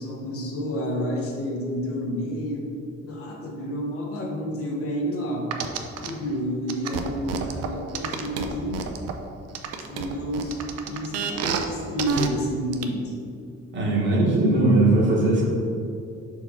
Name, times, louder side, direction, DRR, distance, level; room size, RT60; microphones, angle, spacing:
voice 1, 0.0-2.7 3.0-5.5 6.0-8.9 9.9-10.6 10.9-13.1, equal, 50° left, -1 dB, 0.9 m, -30 dB
sound 1, 5.5-6.1 6.7-9.1 9.5-11.7 12.0-12.3 12.7-12.8, right 7 dB, 60° right, 0.5 m, -28 dB
voice 2, 13.7-15.4, right 2 dB, 40° right, -4 dB, 1.2 m, -19 dB
5.8 x 4.5 x 3.5 m, 2.6 s
cardioid pair, 175°, 29 cm